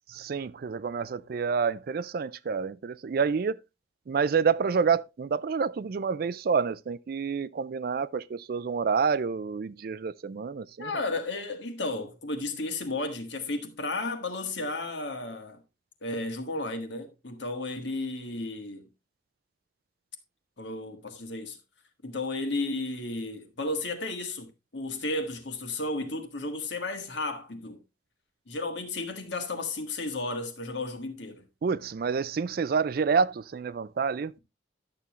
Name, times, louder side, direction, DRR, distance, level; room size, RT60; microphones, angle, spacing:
voice 1, 0.1-3.6 4.1-10.9 31.6-34.3, right 5 dB, 50° right, 0.4 m, -28 dB
voice 2, 10.8-15.6 16.0-18.9 20.6-21.6 22.0-27.8 28.5-31.4, left 2 dB, 70° left, 1.6 m, -33 dB
11.0 x 6.9 x 3.0 m
head